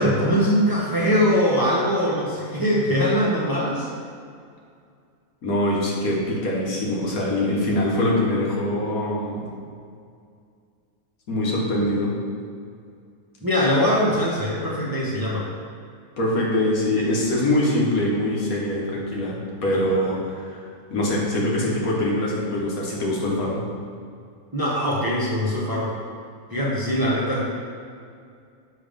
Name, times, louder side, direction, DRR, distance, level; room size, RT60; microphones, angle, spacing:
voice 1, 0.0-3.9 13.4-15.5 19.9-20.0 24.5-25.9 26.5-27.5, equal, 20° right, -5 dB, 0.7 m, -22 dB
voice 2, 5.4-9.5 11.3-12.1 16.2-23.6, left 1 dB, 85° left, -3 dB, 1.6 m, -23 dB
6.4 x 3.5 x 5.1 m, 2.3 s
omnidirectional pair, 1.5 m